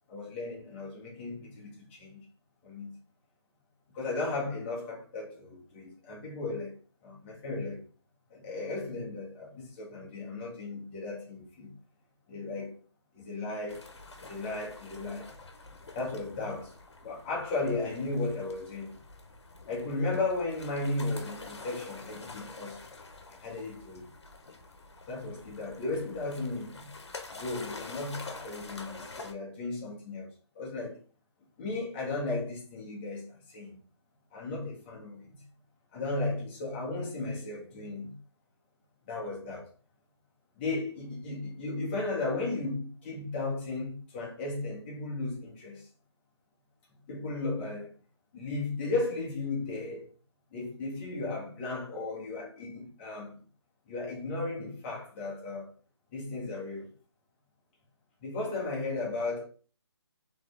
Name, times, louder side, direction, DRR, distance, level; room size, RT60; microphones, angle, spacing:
voice 1, 0.1-2.2 2.6-2.9 3.9-6.8 7.0-7.8 8.3-11.7 12.3-12.8 13.1-13.9 14.2-15.3 15.9-16.7 17.0-19.0 19.7-22.9 23.4-24.1 25.1-26.9 27.3-31.0 31.6-33.8 34.3-35.4 35.9-38.2 39.1-39.7 40.6-45.8 47.1-47.9 48.3-50.1 50.5-53.3 53.9-55.7 56.1-56.9 58.2-59.5, left 3 dB, 25° left, 1.5 m, -35 dB
sound 1, 13.7-29.3, left 3 dB, 75° left, 1.1 m, -47 dB
3.7 x 3.3 x 3.5 m
figure-of-eight pair, 155°, 15 cm